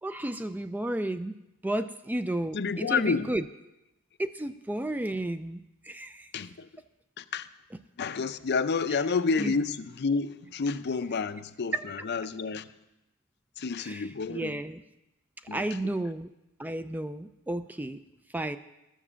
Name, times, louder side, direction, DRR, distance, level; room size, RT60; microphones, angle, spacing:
voice 1, 0.0-1.3 1.6-3.4 4.2-6.3 9.4-9.5 11.7-11.8 13.8-14.8 15.5-16.3 16.6-18.0 18.3-18.6, right 1 dB, 10° right, 0.3 m, -32 dB
voice 2, 2.5-3.3 6.3-6.7 7.2-7.5 8.0-12.7 13.6-14.6 15.5-15.7, left 4 dB, 55° left, 0.5 m, -30 dB
13.0 x 7.3 x 6.8 m
head